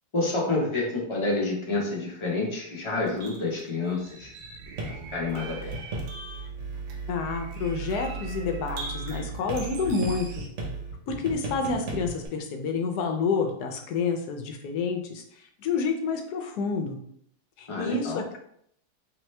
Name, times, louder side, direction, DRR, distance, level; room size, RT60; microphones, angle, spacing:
voice 1, 0.1-4.3 5.1-5.8 17.7-18.2, left 3 dB, 30° left, -3 dB, 0.6 m, -28 dB
sound 1, 3.0-10.5, right 3 dB, 75° right, 1.3 m, -43 dB
sound 2, 4.8-12.3, right 3 dB, 50° right, 1.1 m, -36 dB
voice 2, 7.1-10.4 11.1-15.2 15.6-17.0 17.6-18.4, left 4 dB, 70° left, 4 dB, 1.1 m, -29 dB
4.0 x 2.9 x 3.2 m, 0.68 s
omnidirectional pair, 1.9 m